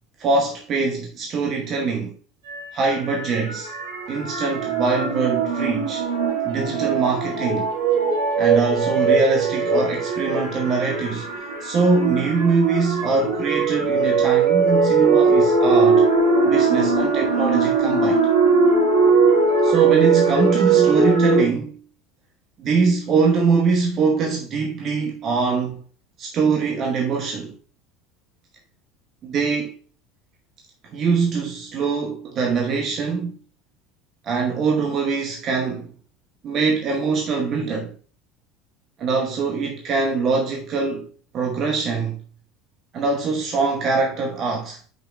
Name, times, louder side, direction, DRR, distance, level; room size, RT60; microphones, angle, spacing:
voice 1, 0.2-2.1 2.7-3.7 4.1-6.1 6.4-7.7 8.4-11.3 11.6-16.1 16.4-18.2 19.6-21.8 22.6-25.8 26.2-27.6 29.2-29.7 30.9-33.3 34.2-35.9 36.4-38.0 39.0-41.1 41.3-42.2 42.9-44.8, right 4 dB, 40° right, 1.0 m, -23 dB
sound 1, 2.5-21.4, right 4 dB, 70° right, 1.5 m, -20 dB
9.0 x 5.1 x 2.2 m
figure-of-eight pair, 70°, 0 cm